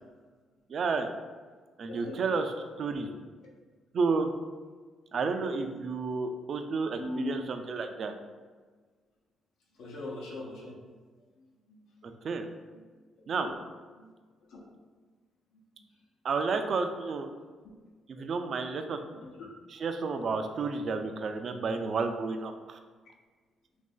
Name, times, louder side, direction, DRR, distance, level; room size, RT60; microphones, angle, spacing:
voice 1, 0.7-1.1 1.8-2.5 2.8-3.1 3.9-4.3 5.1-8.1 12.0-12.5 13.3-13.5 16.2-17.3 18.1-19.0 19.7-22.8, right 4 dB, 55° right, 6 dB, 0.3 m, -31 dB
voice 2, 7.0-7.3 9.8-10.7 11.7-11.9 12.7-12.8 13.4-13.5 14.0-14.1 14.5-14.6 18.2-18.3 19.1-19.5 20.8-20.9, left 2 dB, 80° left, -3 dB, 0.9 m, -40 dB
2.9 x 2.6 x 3.8 m, 1.4 s
cardioid pair, 90°, 0 cm